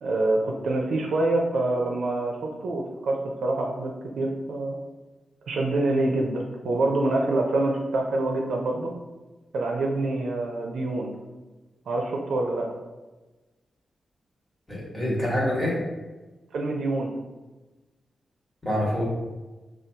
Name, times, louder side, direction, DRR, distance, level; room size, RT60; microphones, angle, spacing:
voice 1, 0.0-4.8 5.5-8.9 9.5-11.1 11.9-12.7 16.5-17.1, right 2 dB, 80° right, 0 dB, 0.4 m, -26 dB
voice 2, 14.7-15.8 18.6-19.0, left 1 dB, 10° left, -6 dB, 1.2 m, -26 dB
3.5 x 2.3 x 2.7 m, 1.2 s
cardioid pair, 75°, 0 cm